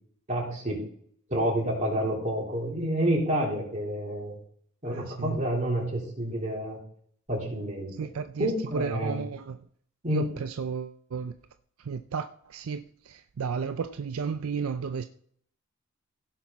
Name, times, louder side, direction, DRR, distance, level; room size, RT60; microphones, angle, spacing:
voice 1, 0.3-0.8 1.3-4.4 4.8-6.8 7.3-7.9 8.4-9.2 10.0-10.3, equal, 35° right, 3.9 m, -29 dB
voice 2, 4.9-5.4 8.0-9.6 10.1-11.3 11.8-15.0, right 6 dB, 75° right, 0.5 m, -33 dB
16.5 x 6.0 x 4.2 m
head